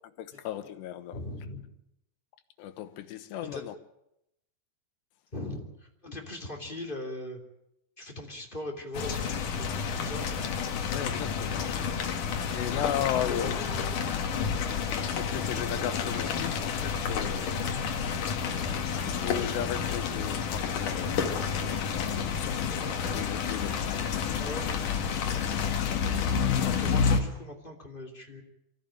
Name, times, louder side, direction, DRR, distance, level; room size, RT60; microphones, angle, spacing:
voice 1, 0.2-1.2 2.6-3.7 10.9-11.7 12.5-13.6 15.1-17.7 18.2-18.7 19.2-21.5 21.9-24.1 25.3-25.5, left 10 dB, 80° left, 3.3 m, -36 dB
voice 2, 1.1-1.7 3.4-3.7 5.3-7.4 8.0-9.7 10.0-10.3 13.2-14.0 24.4-24.8 26.8-28.4, left 1 dB, 15° left, 2.4 m, -39 dB
sound 1, 8.9-27.2, left 6 dB, 55° left, 2.9 m, -30 dB
25.5 x 15.0 x 8.9 m
omnidirectional pair, 4.9 m